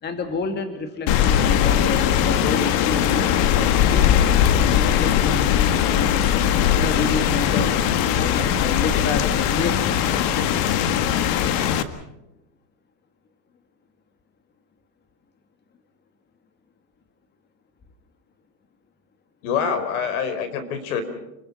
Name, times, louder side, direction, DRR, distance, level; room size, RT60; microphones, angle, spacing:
voice 1, 0.0-6.2 6.8-7.8 8.1-10.2, left 4 dB, 20° left, 7 dB, 2.1 m, -30 dB
Rain, 1.1-11.8, left 9 dB, 45° left, 1.8 m, -20 dB
voice 2, 19.4-21.0, left 6 dB, 65° left, 9 dB, 5.0 m, -25 dB
29.5 x 22.0 x 5.7 m, 0.93 s
supercardioid pair, 130°, 47 cm